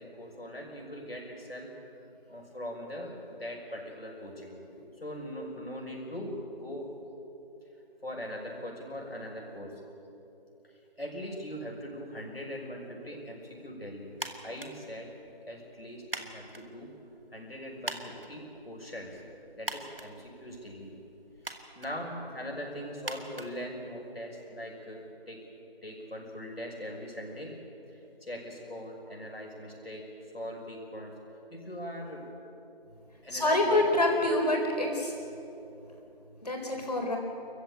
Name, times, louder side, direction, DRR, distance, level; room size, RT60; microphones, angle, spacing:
voice 1, 0.0-1.7 2.3-4.6 5.0-6.9 8.0-9.7 11.0-14.2 14.4-15.1 15.4-16.9 17.3-19.2 19.5-20.9 21.7-25.4 25.8-27.5 27.9-30.0 30.3-31.1 31.5-32.2 33.2-33.8, equal, 70° left, -1 dB, 6.3 m, -41 dB
sound 1, 14.1-24.3, right 2 dB, 65° right, 2.1 m, -45 dB
voice 2, 33.3-35.1 36.4-37.2, left 1 dB, 40° left, 1 dB, 4.1 m, -26 dB
25.0 x 15.0 x 9.1 m, 2.9 s
figure-of-eight pair, 165°, 31 cm